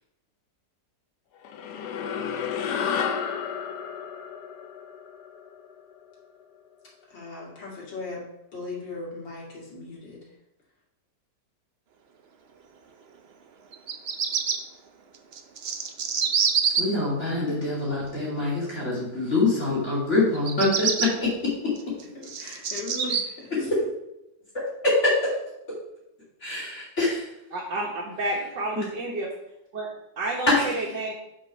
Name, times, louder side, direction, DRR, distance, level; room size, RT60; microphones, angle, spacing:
sound 1, 1.4-6.1, left 7 dB, 70° left, 1.2 m, -31 dB
voice 1, 7.1-8.2 8.5-10.2 22.1-23.7, left 3 dB, 90° left, -4 dB, 2.9 m, -38 dB
Bird vocalization bird call bird song, 13.7-14.6 15.3-16.8 20.3-21.1 21.8-23.2, right 6 dB, 60° right, 0.6 m, -25 dB
voice 2, 16.8-21.1 25.0-25.1 26.4-27.3 30.5-31.0, left 2 dB, 40° left, -7 dB, 2.7 m, -25 dB
voice 3, 27.5-29.3 29.7-29.9 30.2-31.1, right 2 dB, 75° right, -5 dB, 2.1 m, -30 dB
6.2 x 5.5 x 5.3 m, 0.86 s
omnidirectional pair, 1.9 m